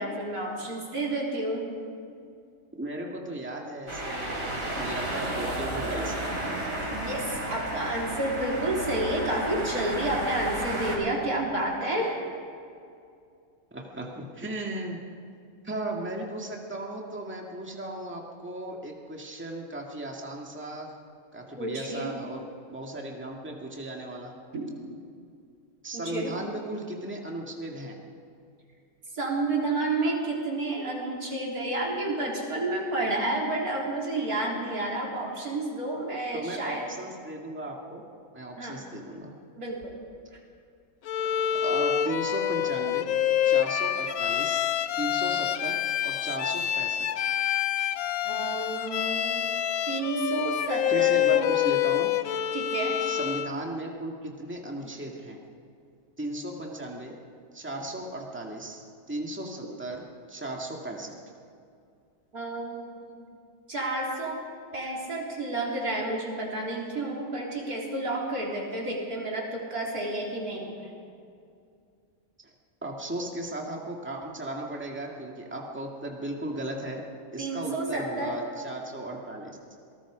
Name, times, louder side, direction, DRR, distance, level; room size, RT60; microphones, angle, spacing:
voice 1, 0.0-1.7 6.9-12.2 21.6-22.2 24.5-24.7 25.9-26.3 29.1-36.9 38.6-38.8 39.6-39.9 48.2-49.5 49.9-51.5 52.5-53.0 62.3-63.1 63.7-64.4 64.7-70.9 77.4-78.4, right 2 dB, 75° right, -2 dB, 4.2 m, -30 dB
voice 2, 2.8-6.3 13.7-15.1 15.6-20.9 21.3-24.3 25.8-28.0 36.3-38.0 38.3-39.3 41.6-43.1 43.4-44.7 45.0-47.2 50.9-52.1 53.0-55.4 56.2-57.2 57.5-61.2 72.4-72.5 72.8-77.0 77.3-79.6, right 1 dB, 10° right, 0 dB, 2.0 m, -36 dB
sound 1, 3.9-11.0, right 1 dB, 60° right, 4.9 m, -32 dB
Bowed string instrument, 41.1-53.6, left 10 dB, 70° left, 1.1 m, -27 dB
27.0 x 19.0 x 5.1 m, 2.4 s
omnidirectional pair, 1.6 m